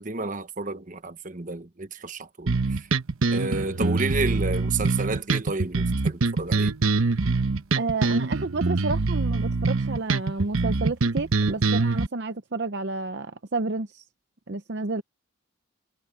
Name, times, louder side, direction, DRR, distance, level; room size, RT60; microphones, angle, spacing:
voice 1, 0.0-2.9 3.3-6.7, right 3 dB, 40° right, 1.1 m, -31 dB
sound 1, 2.5-12.1, right 3 dB, 90° right, 1.0 m, -24 dB
voice 2, 7.8-14.0 14.5-15.0, right 3 dB, 55° right, 0.7 m, -30 dB
head